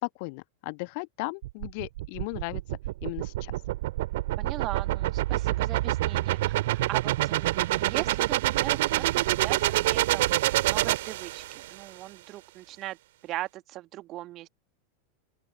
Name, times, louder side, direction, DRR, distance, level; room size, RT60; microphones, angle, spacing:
voice 1, 0.0-2.6 3.0-3.5, left 31 dB, 45° left, 1.3 m, -36 dB
sound 1, 1.4-11.7, right 16 dB, 55° right, 2.4 m, -27 dB
voice 2, 4.4-10.4 10.6-13.0 13.2-14.5, right 16 dB, 35° right, 1.8 m, -39 dB
open air
figure-of-eight pair, 90°, 0 cm